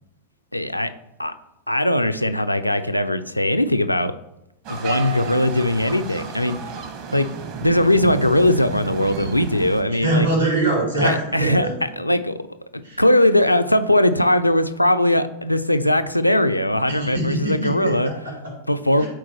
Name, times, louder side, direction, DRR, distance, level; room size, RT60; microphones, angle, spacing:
voice 1, 0.5-0.9 1.2-1.3 1.7-4.1 4.7-6.6 7.1-7.3 7.6-10.3 11.0-11.7 12.0-12.4 13.0-18.1 18.7-19.0, left 1 dB, 85° left, 10 dB, 0.4 m, -19 dB
sound 1, 4.6-9.8, right 6 dB, 45° right, 1.1 m, -33 dB
voice 2, 9.9-11.7 12.8-13.0 16.9-18.6 19.0-19.1, right 2 dB, 80° right, -1 dB, 3.0 m, -23 dB
12.0 x 4.5 x 3.0 m, 0.88 s
figure-of-eight pair, 90°, 0 cm